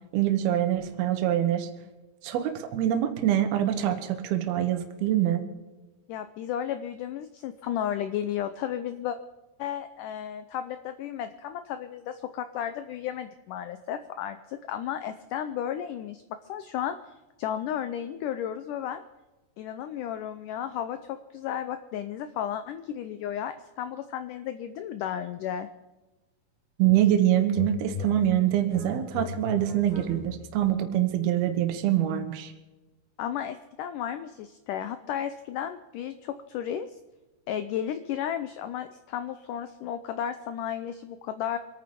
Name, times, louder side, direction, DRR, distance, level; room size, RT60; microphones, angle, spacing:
voice 1, 0.1-1.7 2.2-5.5 26.8-32.5, right 11 dB, 80° right, 7 dB, 3.1 m, -25 dB
voice 2, 6.1-9.2 9.6-16.2 16.5-19.0 19.6-25.7 33.2-36.9 37.5-41.6, left 10 dB, 80° left, 10 dB, 1.9 m, -33 dB
sound 1, 26.8-27.2 27.5-30.6, left 5 dB, 20° left, 3.7 m, -39 dB
25.0 x 9.5 x 5.2 m, 1.1 s
omnidirectional pair, 4.4 m